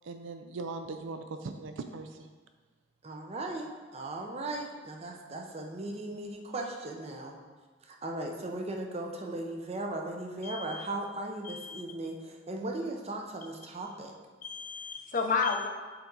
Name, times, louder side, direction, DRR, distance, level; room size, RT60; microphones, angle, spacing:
voice 1, 0.0-2.1, right 3 dB, 75° right, 7 dB, 0.4 m, -39 dB
voice 2, 3.0-7.3 7.8-14.1, right 2 dB, 35° right, 1 dB, 0.6 m, -37 dB
voice 3, 10.4-10.9 11.4-11.9 14.4-15.7, left 4 dB, 45° left, 4 dB, 0.5 m, -32 dB
6.8 x 4.2 x 3.9 m, 1.4 s
head